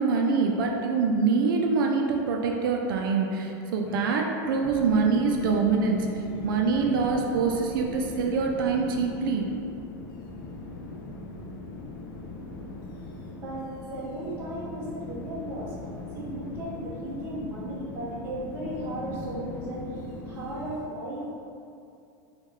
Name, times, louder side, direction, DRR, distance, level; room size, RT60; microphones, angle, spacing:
voice 1, 0.0-9.5, right 4 dB, 90° right, 1 dB, 0.4 m, -25 dB
sound 1, 4.6-20.8, left 2 dB, 90° left, 0.4 m, -39 dB
voice 2, 13.4-15.7 16.1-21.4, right 1 dB, 20° right, -6 dB, 0.6 m, -36 dB
3.5 x 2.3 x 3.1 m, 2.6 s
supercardioid pair, 170°, 11 cm